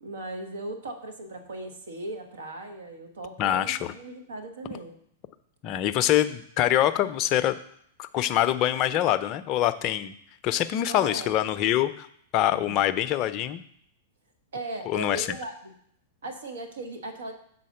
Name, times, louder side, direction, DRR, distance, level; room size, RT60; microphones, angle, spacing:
voice 1, 0.0-5.0 8.9-9.1 10.9-11.4 12.5-12.8 14.5-15.7 16.2-17.3, right 2 dB, 75° right, 5 dB, 1.2 m, -38 dB
voice 2, 3.4-4.0 5.6-7.5 8.0-10.1 10.4-12.1 12.3-13.6 14.9-15.3, left 12 dB, 40° left, 11 dB, 0.5 m, -24 dB
6.4 x 4.1 x 6.5 m, 0.69 s
hypercardioid pair, 100°, 0 cm